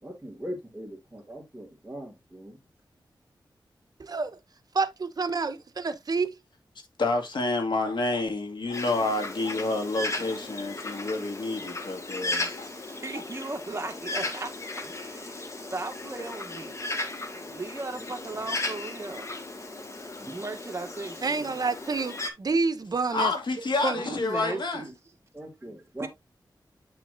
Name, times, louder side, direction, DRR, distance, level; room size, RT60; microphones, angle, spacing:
voice 1, 0.0-2.6 17.3-17.6 18.0-18.1 18.3-18.4 20.2-20.4 25.3-26.1, equal, 10° right, 2.6 m, -41 dB
voice 2, 4.0-4.4 4.7-5.6 5.8-6.3 21.2-23.3 23.8-24.0, right 4 dB, 50° right, 1.1 m, -28 dB
voice 3, 7.0-12.7 23.1-24.8, left 3 dB, 70° left, 2.3 m, -29 dB
Bird, 8.7-22.3, left 2 dB, 40° left, 1.7 m, -36 dB
voice 4, 12.9-16.8 17.5-19.3 20.3-21.5 23.9-25.0 25.7-26.1, right 2 dB, 35° right, 1.7 m, -37 dB
8.7 x 5.7 x 2.7 m
wide cardioid pair, 105°, 8 cm